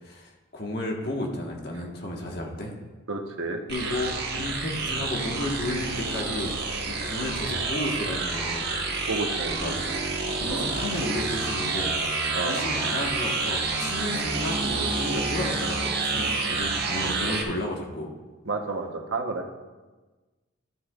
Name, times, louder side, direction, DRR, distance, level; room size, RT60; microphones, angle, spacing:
voice 1, 0.0-2.7 3.7-6.5 6.8-8.7 9.4-9.8 10.4-11.9 12.4-18.1, left 1 dB, 50° left, 0 dB, 1.4 m, -32 dB
voice 2, 3.1-3.6 9.1-9.8 10.5-10.7 12.3-12.7 18.5-19.4, right 3 dB, 80° right, 3 dB, 1.0 m, -31 dB
sound 1, 3.7-17.4, right 3 dB, 50° right, 1.3 m, -28 dB
12.0 x 10.0 x 2.4 m, 1.2 s
head